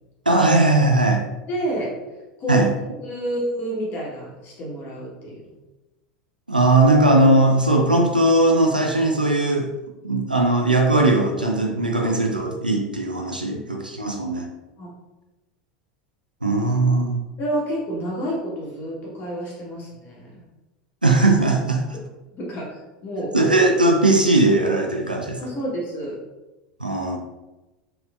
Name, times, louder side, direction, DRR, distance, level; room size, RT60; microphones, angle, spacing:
voice 1, 0.3-1.2 2.5-2.7 6.5-9.7 10.0-14.5 16.4-17.2 21.0-21.8 23.3-25.4 26.8-27.2, right 2 dB, 90° right, 2 dB, 0.3 m, -19 dB
voice 2, 1.5-1.9 2.4-2.6 3.0-5.5 13.5-13.6 14.8-14.9 17.4-20.3 22.3-23.3 25.4-26.2, equal, 40° left, -4 dB, 0.9 m, -29 dB
3.1 x 2.9 x 2.4 m, 1.1 s
figure-of-eight pair, 80°, 5 cm